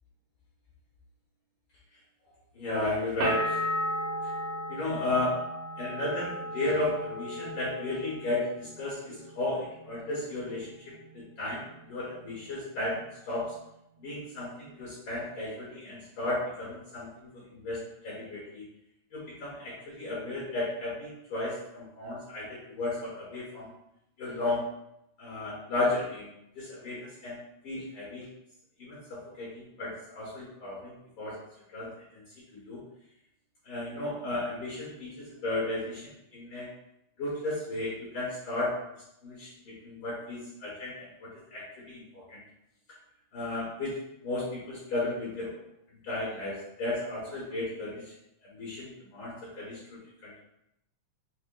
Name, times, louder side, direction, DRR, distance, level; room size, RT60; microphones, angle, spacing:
voice 1, 2.5-3.6 4.7-5.4 5.8-10.7 11.1-11.6 11.9-13.5 14.0-18.6 19.1-23.7 24.2-24.6 25.2-27.4 27.6-28.3 28.8-31.4 31.7-32.2 32.6-32.8 33.6-36.7 37.2-38.8 39.2-42.4 43.3-44.0 44.2-45.5 46.0-48.1 48.5-50.4, left 2 dB, 80° left, -6 dB, 1.1 m, -34 dB
sound 1, 3.2-8.8 9.1-9.9, equal, 80° right, 2.2 m, -35 dB
5.5 x 2.5 x 2.2 m, 0.80 s
omnidirectional pair, 4.0 m